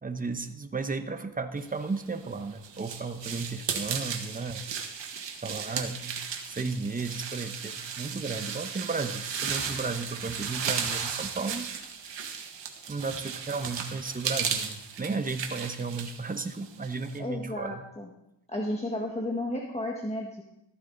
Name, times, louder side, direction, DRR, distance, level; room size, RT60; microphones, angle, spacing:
voice 1, 0.0-4.7 5.4-6.2 6.5-11.7 12.1-12.3 12.9-17.8, right 4 dB, 20° right, 8 dB, 1.0 m, -34 dB
sound 1, 2.0-17.2, right 7 dB, 85° right, 1.6 m, -35 dB
voice 2, 17.2-18.1 18.5-20.4, left 1 dB, 15° left, -1 dB, 1.5 m, -33 dB
14.5 x 14.0 x 4.0 m, 0.83 s
wide cardioid pair, 140°, 43 cm